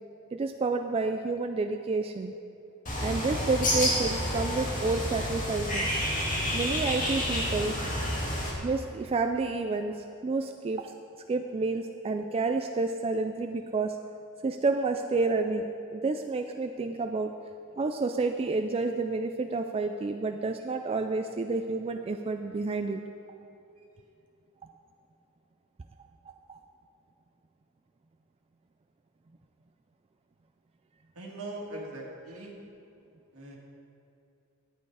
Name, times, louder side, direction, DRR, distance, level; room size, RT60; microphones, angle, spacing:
voice 1, 0.3-2.3 3.0-5.9 6.5-7.8 8.6-10.9 11.3-14.0 14.4-17.3 17.8-23.0 26.5-26.6, right 3 dB, 25° right, 6 dB, 0.3 m, -29 dB
Bird, 2.9-8.5, equal, 35° left, 2.0 m, -29 dB
voice 2, 31.2-32.5 33.3-33.6, right 1 dB, 75° right, -2 dB, 2.0 m, -40 dB
11.0 x 8.6 x 4.8 m, 2.7 s
head